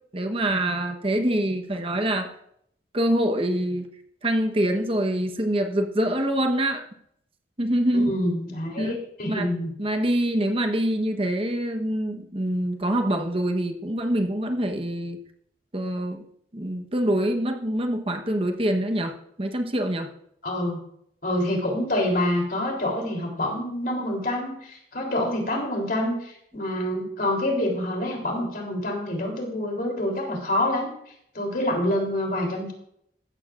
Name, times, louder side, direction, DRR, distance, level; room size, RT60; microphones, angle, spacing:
voice 1, 0.1-2.3 2.9-3.9 4.2-6.8 7.6-8.1 8.8-9.0 9.3-9.5 9.8-15.2 15.7-16.2 16.5-20.1, right 1 dB, 30° right, 4 dB, 1.0 m, -25 dB
voice 2, 7.9-9.7 20.4-20.8 21.2-30.9 31.3-32.7, left 1 dB, 55° left, 1 dB, 3.3 m, -27 dB
15.0 x 13.5 x 2.5 m, 0.71 s
head